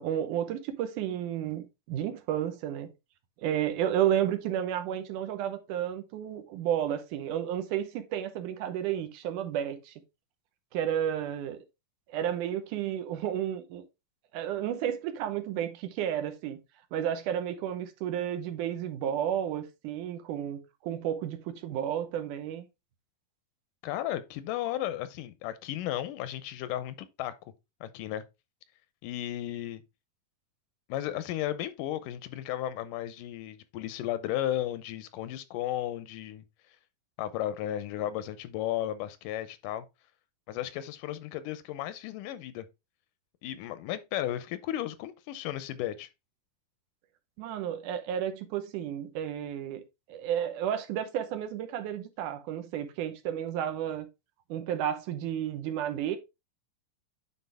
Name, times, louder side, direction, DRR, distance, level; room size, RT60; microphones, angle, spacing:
voice 1, 0.0-2.9 3.4-9.9 10.7-11.6 12.1-13.8 14.3-16.6 16.9-22.7 47.4-49.8 50.1-54.1 54.5-56.2, right 10 dB, 80° right, 2.4 m, -32 dB
voice 2, 23.8-27.3 27.8-28.2 29.0-29.8 30.9-36.4 37.2-39.9 40.5-42.7 43.4-46.1, left 12 dB, 90° left, 2.3 m, -34 dB
9.6 x 4.1 x 3.5 m
omnidirectional pair, 3.7 m